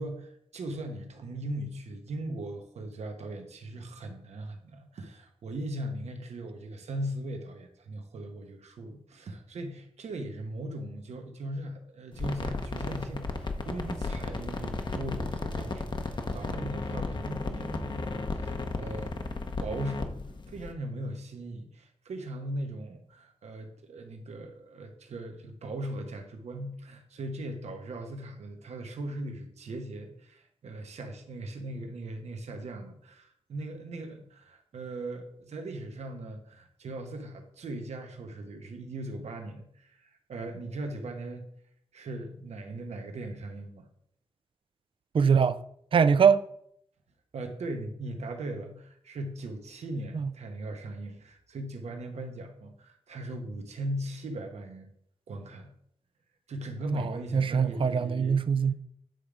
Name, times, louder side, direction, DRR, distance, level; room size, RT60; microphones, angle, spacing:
voice 1, 0.0-19.1 19.6-20.1 20.5-41.4 41.9-43.9 47.3-54.9 55.3-55.7 56.5-58.5, right 1 dB, 85° right, 1.1 m, -39 dB
sound 1, 12.1-20.7, left 3 dB, 45° left, 0.9 m, -34 dB
voice 2, 45.1-45.6 45.9-46.4 50.1-50.3 56.9-58.7, right 6 dB, 50° right, 0.4 m, -23 dB
9.2 x 3.4 x 5.0 m
cardioid pair, 75°, 11 cm